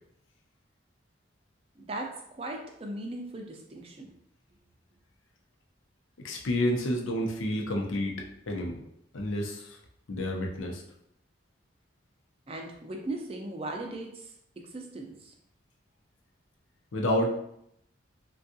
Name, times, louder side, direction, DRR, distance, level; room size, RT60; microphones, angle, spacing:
voice 1, 1.8-2.1 2.4-4.1 12.5-14.3 14.6-15.3, right 2 dB, 30° right, 2 dB, 0.4 m, -38 dB
voice 2, 6.2-8.8 9.1-9.8 10.1-10.8 16.9-17.3, left 1 dB, 85° left, 1 dB, 0.6 m, -29 dB
3.5 x 2.3 x 2.7 m, 0.74 s
head